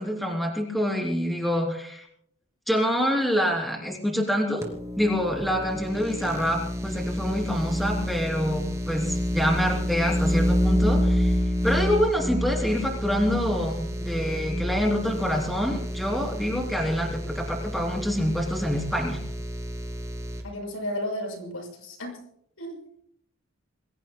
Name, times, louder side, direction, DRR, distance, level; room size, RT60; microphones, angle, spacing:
voice 1, 0.0-2.0 2.7-4.7 5.0-11.3 11.6-19.2, equal, ahead, 0 dB, 3.2 m, -26 dB
sound 1, 4.6-20.4, equal, 15° right, 2.6 m, -28 dB
voice 2, 20.4-22.2 22.6-23.0, left 1 dB, 80° left, 1 dB, 7.1 m, -33 dB
28.5 x 21.0 x 2.3 m, 0.67 s
head